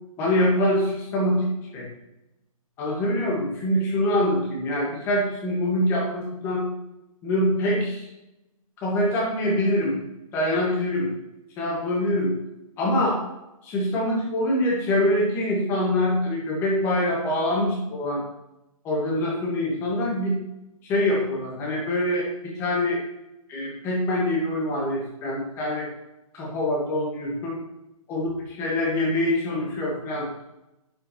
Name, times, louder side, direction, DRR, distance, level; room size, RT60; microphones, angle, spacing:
voice 1, 0.2-1.9 2.8-6.7 7.2-8.1 8.8-9.9 10.3-11.1 11.6-12.3 12.8-13.2 13.6-18.2 18.8-20.4 20.8-23.0 23.5-25.9 26.3-27.6 28.1-30.3, left 1 dB, 15° left, -2 dB, 1.4 m, -24 dB
10.0 x 5.4 x 2.9 m, 0.92 s
hypercardioid pair, 165°, 19 cm